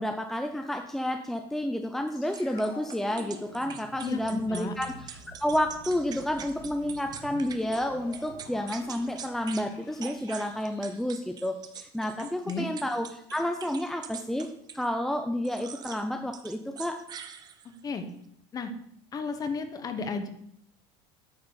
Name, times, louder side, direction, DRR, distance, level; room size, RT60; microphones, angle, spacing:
voice 1, 0.0-14.5 14.7-17.0, left 1 dB, ahead, 5 dB, 0.5 m, -30 dB
sound 1, 2.1-12.2 12.5-12.6, left 1 dB, 80° left, 3.6 m, -49 dB
sound 2, 2.3-7.8 8.1-9.7 10.0-14.9 15.4-16.0 16.3-17.8, right 7 dB, 30° right, 0.8 m, -43 dB
voice 2, 4.0-4.7 12.2-12.7 17.8-18.0 18.5-18.7 19.1-20.3, left 4 dB, 30° left, 8 dB, 1.2 m, -33 dB
9.5 x 4.3 x 6.9 m, 0.70 s
cardioid pair, 135°, 13 cm